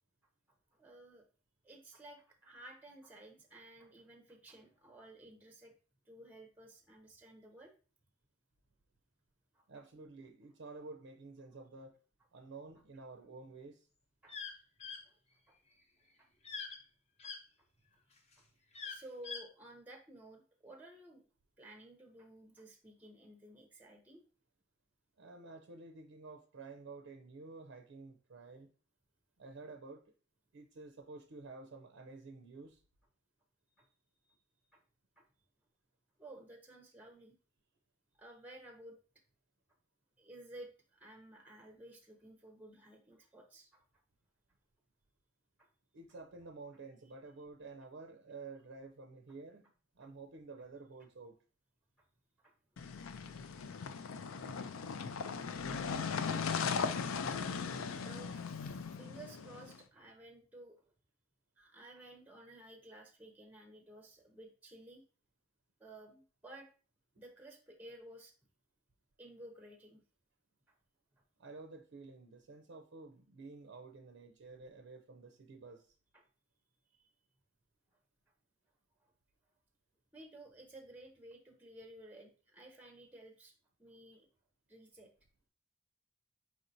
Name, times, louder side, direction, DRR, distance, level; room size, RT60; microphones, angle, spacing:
voice 1, 0.7-1.2 1.6-5.7 6.1-7.7 9.5-9.6 14.2-14.4 15.0-15.2 15.5-15.6 16.2-16.3 17.2-17.3 18.1-18.5 18.9-21.2 21.6-24.2 33.7-33.9 34.2-34.4 34.7-34.8 35.2-35.3 36.2-37.4 38.2-39.0 40.2-43.8 45.6-45.7 52.4-53.7 54.7-55.4 57.9-60.9 61.6-65.0 65.8-66.7 67.2-68.3 69.2-70.0 70.7-70.8 76.1-76.2 76.9-77.1 79.0-79.1 80.1-83.5 83.8-84.3 84.7-85.1, right 1 dB, 10° right, 0.6 m, -55 dB
voice 2, 9.7-11.9 12.3-13.9 25.2-28.7 29.4-30.0 30.5-32.8 45.9-51.4 71.4-75.9, right 3 dB, 65° right, 0.5 m, -51 dB
sound 1, 14.3-14.5 14.8-15.0 16.4-16.8 17.2-17.4 18.7-19.4, left 5 dB, 30° left, 0.7 m, -43 dB
sound 2, 52.8-59.8, left 5 dB, 80° left, 0.4 m, -38 dB
4.6 x 4.3 x 2.6 m
head